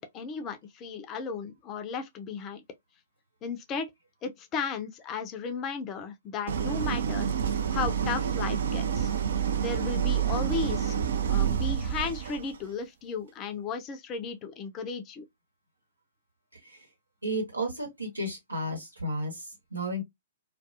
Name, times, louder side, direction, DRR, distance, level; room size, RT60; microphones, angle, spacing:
voice 1, 0.0-2.6 3.4-3.9 4.2-7.3 7.7-9.1 9.6-11.0 11.3-15.2, left 5 dB, 25° left, 0.4 m, -35 dB
Idling, 6.5-12.5, right 8 dB, 60° right, 0.4 m, -28 dB
voice 2, 16.5-16.9 17.2-20.0, right 1 dB, 80° right, 1.1 m, -33 dB
2.3 x 2.3 x 2.6 m
figure-of-eight pair, 110°, 0 cm